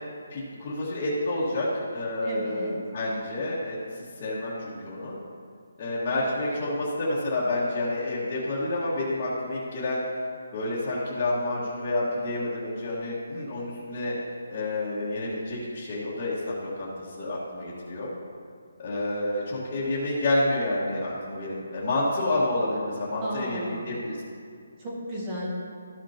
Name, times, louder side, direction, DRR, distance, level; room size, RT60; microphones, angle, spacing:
voice 1, 0.3-5.1 5.8-10.0 10.5-14.1 14.5-16.9 17.2-18.1 18.8-24.2, left 1 dB, 25° left, -10 dB, 1.7 m, -29 dB
voice 2, 2.2-2.7 23.2-23.9 24.8-25.5, equal, 20° right, -6 dB, 1.9 m, -34 dB
13.5 x 6.1 x 2.9 m, 2.3 s
hypercardioid pair, 170°, 0 cm